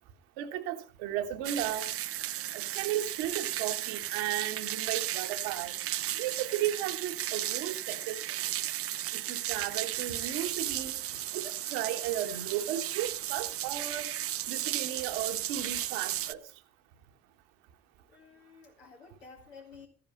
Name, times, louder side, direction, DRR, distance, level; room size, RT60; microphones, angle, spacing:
voice 1, 0.4-1.9 2.5-5.8 6.1-8.4 9.1-10.9 11.3-14.1 14.5-16.4, right 11 dB, 75° right, 1.4 m, -35 dB
sound 1, 1.4-16.3, right 13 dB, 45° right, 0.6 m, -35 dB
voice 2, 18.1-19.9, left 5 dB, 85° left, 2.5 m, -52 dB
14.0 x 9.9 x 5.1 m
hypercardioid pair, 45°, 31 cm